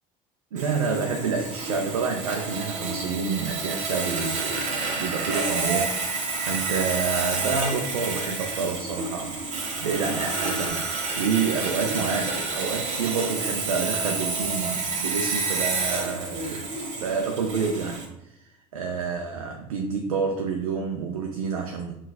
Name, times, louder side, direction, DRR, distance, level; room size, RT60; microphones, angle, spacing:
voice 1, 0.5-6.0 6.4-16.7 17.0-18.4 18.7-21.9, right 5 dB, 85° right, 3 dB, 0.4 m, -28 dB
Sawing, 0.6-18.1, right 3 dB, 40° right, 1.0 m, -29 dB
5.6 x 2.3 x 2.3 m, 0.85 s
hypercardioid pair, 70°, 18 cm